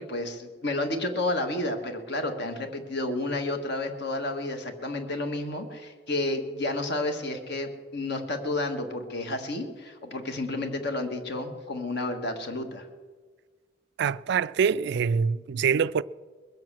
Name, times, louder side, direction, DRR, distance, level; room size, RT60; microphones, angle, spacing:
voice 1, 0.0-12.9, left 2 dB, 60° left, 1.6 m, -31 dB
voice 2, 14.0-16.0, right 6 dB, 60° right, 0.3 m, -25 dB
21.0 x 7.7 x 7.4 m
head